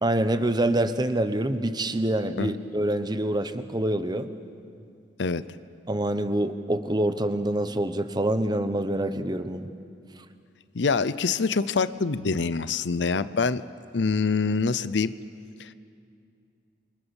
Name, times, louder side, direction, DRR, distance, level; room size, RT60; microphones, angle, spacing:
voice 1, 0.0-4.3 5.9-9.7, right 1 dB, 25° right, 10 dB, 1.1 m, -26 dB
voice 2, 10.7-13.7 13.9-15.1 15.6-15.7, left 4 dB, 70° left, 15 dB, 0.7 m, -25 dB
29.0 x 24.5 x 7.2 m, 2.4 s
head